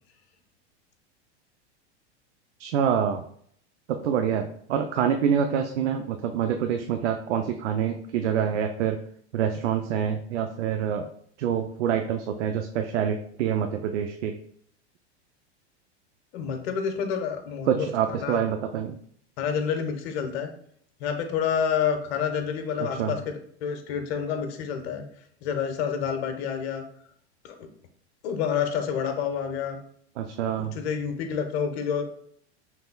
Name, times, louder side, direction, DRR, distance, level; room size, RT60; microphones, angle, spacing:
voice 1, 2.6-3.2 3.9-9.0 9.3-11.1 11.4-14.3 17.7-19.0 22.8-23.1 30.2-30.7, right 8 dB, 80° right, 6 dB, 0.6 m, -26 dB
voice 2, 16.3-18.4 19.4-20.5 21.0-25.0 25.4-26.8 27.4-27.7 28.2-29.8 30.6-32.0, left 7 dB, 65° left, 6 dB, 1.0 m, -28 dB
5.6 x 3.4 x 2.2 m, 0.63 s
hypercardioid pair, 115°, 35 cm